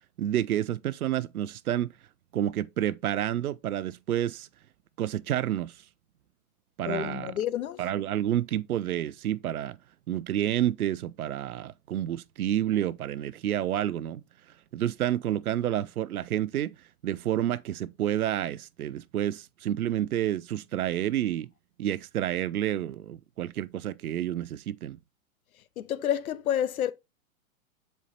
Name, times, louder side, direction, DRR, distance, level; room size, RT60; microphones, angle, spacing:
voice 1, 0.2-1.9 2.3-4.5 5.0-5.8 6.8-7.3 7.8-9.8 10.1-14.2 14.7-16.7 17.0-21.5 21.8-25.0, right 12 dB, 80° right, 0.7 m, -29 dB
voice 2, 6.8-7.8 25.8-26.9, left 10 dB, 75° left, 1.0 m, -29 dB
7.6 x 4.7 x 4.1 m
hypercardioid pair, 115°, 43 cm